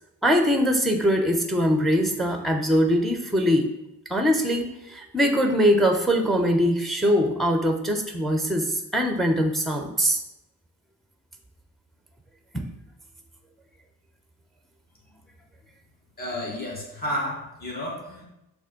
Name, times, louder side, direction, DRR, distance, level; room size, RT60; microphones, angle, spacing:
voice 1, 0.2-3.7 4.1-10.2, equal, ahead, 5 dB, 1.0 m, -22 dB
voice 2, 16.2-18.3, equal, 25° left, -4 dB, 2.4 m, -31 dB
6.4 x 3.5 x 5.3 m, 0.89 s
cardioid pair, 65°, 38 cm